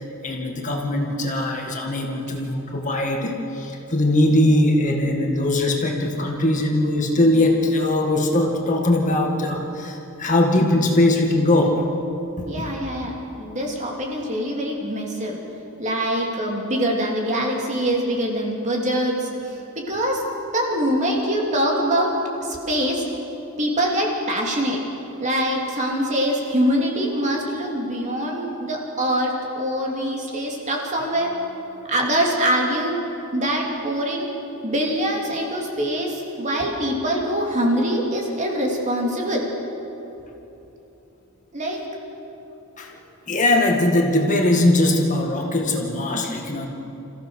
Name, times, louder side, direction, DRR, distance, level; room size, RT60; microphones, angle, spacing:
voice 1, 0.2-11.8 12.4-12.7 42.8-42.9 43.3-46.7, left 1 dB, 35° left, 1 dB, 1.9 m, -20 dB
voice 2, 12.4-15.4 15.8-19.3 19.9-20.2 20.5-22.1 22.4-23.0 23.6-24.8 25.2-31.4 31.9-33.0 33.3-34.3 34.6-39.5 41.5-41.8, equal, 35° right, -1 dB, 3.0 m, -24 dB
27.5 x 15.0 x 6.4 m, 3.0 s
head